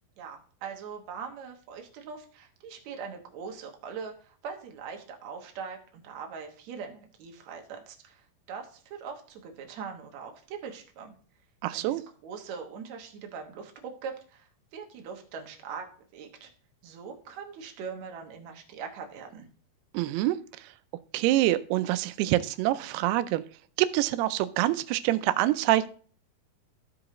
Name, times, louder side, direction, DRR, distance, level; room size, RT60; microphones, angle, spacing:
voice 1, 0.2-11.1 11.7-16.5 16.8-19.5, right 6 dB, 65° right, 3 dB, 1.9 m, -41 dB
voice 2, 11.6-12.0 19.9-20.4 21.1-23.4 23.8-25.9, right 15 dB, 85° right, 12 dB, 2.6 m, -25 dB
14.0 x 4.9 x 3.7 m, 0.43 s
omnidirectional pair, 4.7 m